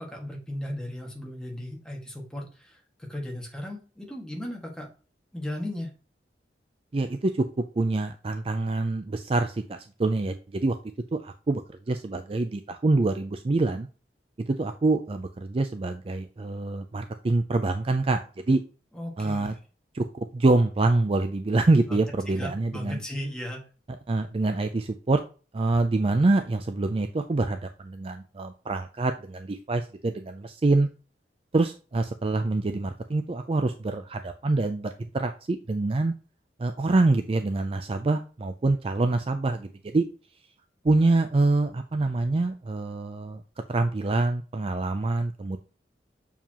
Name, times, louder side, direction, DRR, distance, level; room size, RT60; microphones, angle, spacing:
voice 1, 0.0-4.9 5.3-6.0 18.9-19.6 21.9-22.0 22.4-23.7 39.1-39.2, left 1 dB, 5° left, -1 dB, 1.7 m, -36 dB
voice 2, 6.9-7.5 7.8-10.8 11.1-11.6 11.9-13.9 14.5-18.6 19.2-19.5 19.9-23.0 24.1-25.2 25.5-30.9 31.5-36.1 36.6-40.0 40.8-43.4 43.7-45.6, right 2 dB, 30° right, 7 dB, 0.4 m, -25 dB
7.1 x 4.7 x 2.9 m, 0.35 s
head